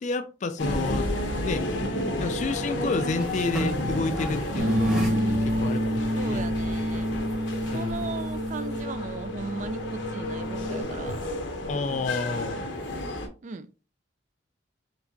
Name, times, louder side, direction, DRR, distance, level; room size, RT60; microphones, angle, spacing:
voice 1, 0.0-1.1 1.4-1.6 2.2-5.1 5.4-6.5 7.7-8.1 11.7-12.7, left 3 dB, 40° left, 0.3 m, -30 dB
sound 1, 0.6-13.3, left 1 dB, 70° left, 0.8 m, -32 dB
sound 2, 2.1-12.1, right 1 dB, 5° right, 0.9 m, -41 dB
voice 2, 4.5-5.7 6.1-7.1 7.7-11.2 13.4-13.7, right 4 dB, 40° right, 0.4 m, -36 dB
Bass guitar, 4.6-10.8, equal, 65° right, 0.8 m, -29 dB
4.5 x 3.3 x 2.7 m
head